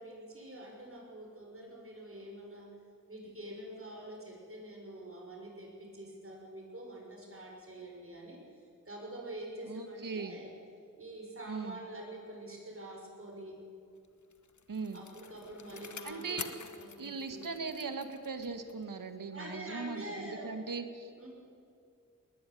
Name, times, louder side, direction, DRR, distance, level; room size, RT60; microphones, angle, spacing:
voice 1, 0.0-2.7 3.1-10.5 11.0-13.6 14.9-16.4 16.8-17.4 19.3-20.5 21.2-21.3, right 1 dB, 40° right, 0 dB, 6.0 m, -46 dB
voice 2, 9.6-10.4 11.5-11.8 14.7-15.0 16.0-16.5 17.0-21.3, right 4 dB, 70° right, 8 dB, 2.0 m, -39 dB
Bicycle, 14.0-18.9 19.3-19.4, left 5 dB, 60° left, 1.3 m, -48 dB
20.0 x 19.5 x 9.6 m, 2.4 s
wide cardioid pair, 70°, 33 cm